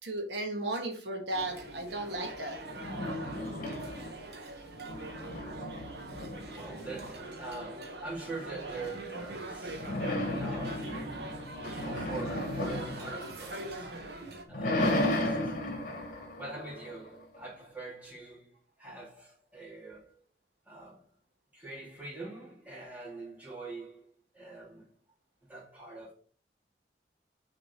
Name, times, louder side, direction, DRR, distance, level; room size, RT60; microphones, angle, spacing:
voice 1, 0.0-2.6, right 2 dB, 85° right, 1.6 m, -35 dB
sound 1, 1.3-14.4, right 2 dB, 65° right, 1.2 m, -42 dB
sound 2, 2.6-4.3 4.7-7.4 9.7-13.9 14.3-17.4, left 1 dB, 50° left, 1.8 m, -34 dB
voice 2, 6.5-9.8 10.4-11.0 11.7-13.9 14.5-15.5 16.4-18.5 18.8-20.2 20.7-21.1 21.5-24.9 25.4-26.1, right 3 dB, 10° right, 2.3 m, -44 dB
6.2 x 3.8 x 6.2 m
head